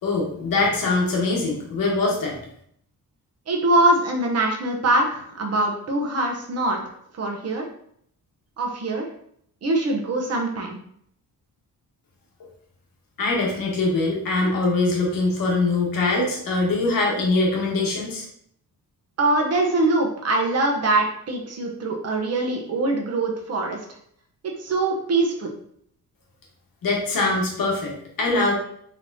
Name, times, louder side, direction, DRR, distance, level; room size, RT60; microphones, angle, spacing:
voice 1, 0.0-2.4 13.2-18.3 26.8-28.5, left 3 dB, 65° left, -1 dB, 1.2 m, -23 dB
voice 2, 3.5-7.7 8.6-9.0 9.6-10.7 19.2-23.8 24.4-25.5, right 2 dB, 40° right, 1 dB, 0.8 m, -23 dB
4.1 x 3.5 x 2.7 m, 0.67 s
wide cardioid pair, 180°, 37 cm